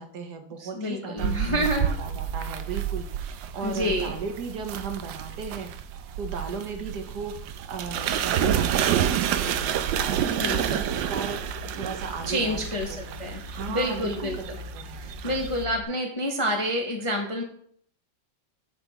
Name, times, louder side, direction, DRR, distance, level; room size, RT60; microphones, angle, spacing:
voice 1, 0.0-5.7 6.2-12.6 12.9-14.4 14.7-15.4, right 5 dB, 65° right, 6 dB, 1.3 m, -36 dB
voice 2, 0.6-1.9 3.6-4.1 10.4-10.9 12.3-14.6 15.0-17.4, equal, 30° left, 1 dB, 0.6 m, -28 dB
sound 1, 1.2-15.6, right 9 dB, 80° right, 1.3 m, -29 dB
sound 2, 7.8-15.8, left 3 dB, 40° right, 2.1 m, -43 dB
8.8 x 3.4 x 6.2 m, 0.62 s
omnidirectional pair, 2.1 m